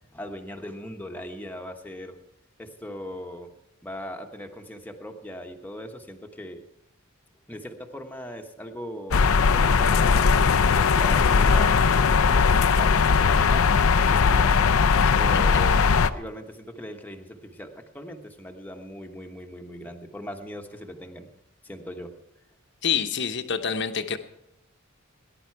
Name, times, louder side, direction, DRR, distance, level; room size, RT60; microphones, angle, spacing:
voice 1, 0.1-2.2 2.6-6.6 7.5-9.2 9.5-11.8 12.3-13.8 14.1-14.7 15.1-21.3 21.6-22.2, equal, 10° left, 4 dB, 1.2 m, -39 dB
sound 1, 9.1-16.1, left 5 dB, 80° left, 0.6 m, -19 dB
voice 2, 15.0-15.7 22.8-24.2, left 6 dB, 55° left, 8 dB, 1.0 m, -28 dB
19.0 x 11.0 x 4.6 m, 0.80 s
head